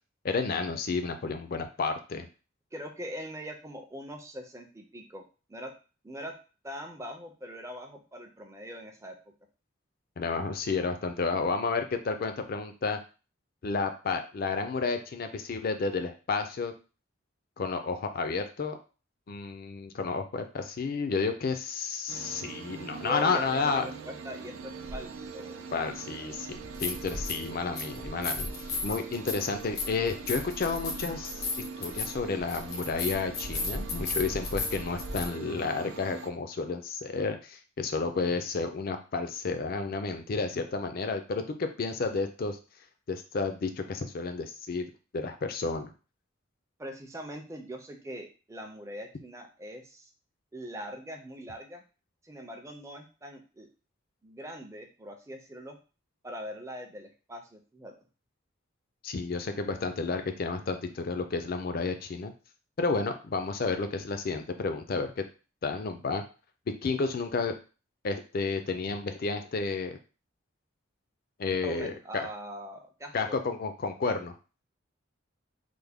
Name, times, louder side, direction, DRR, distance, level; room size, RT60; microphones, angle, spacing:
voice 1, 0.2-2.3 10.2-13.0 13.6-16.7 17.6-18.8 19.3-23.9 25.7-28.5 28.8-31.4 31.8-42.6 43.1-45.9 59.0-62.3 62.8-65.2 65.6-66.2 66.8-67.5 68.0-70.0 71.4-72.3 73.1-74.3, left 4 dB, 45° left, 7 dB, 0.4 m, -31 dB
voice 2, 2.7-5.2 5.5-5.7 6.0-6.4 6.6-9.2 22.9-25.7 46.8-50.1 50.5-51.8 52.2-53.7 54.2-55.8 56.2-57.9 71.6-73.4, equal, 15° right, 3 dB, 0.4 m, -42 dB
sound 1, 22.1-36.3, right 5 dB, 70° right, 0.4 m, -43 dB
sound 2, 24.9-25.0 26.5-27.5 27.8-35.3, left 3 dB, 80° left, 0.9 m, -35 dB
3.3 x 2.1 x 3.5 m, 0.35 s
head